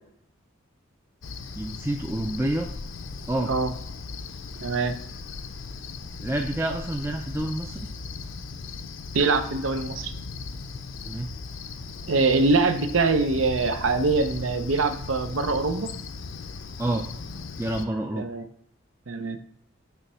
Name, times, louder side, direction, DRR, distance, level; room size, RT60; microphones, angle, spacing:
Cricket, 1.2-17.9, left 4 dB, 70° left, 0.5 m, -38 dB
voice 1, 1.6-2.7 3.3-3.5 6.2-7.8 11.0-11.3 16.8-17.0 17.6-18.3, right 1 dB, 10° right, 3 dB, 0.3 m, -28 dB
voice 2, 4.6-5.0 9.1-10.1 12.1-15.9 18.2-18.5 19.1-19.4, right 3 dB, 80° right, 8 dB, 0.7 m, -23 dB
7.0 x 3.3 x 5.6 m, 0.70 s
head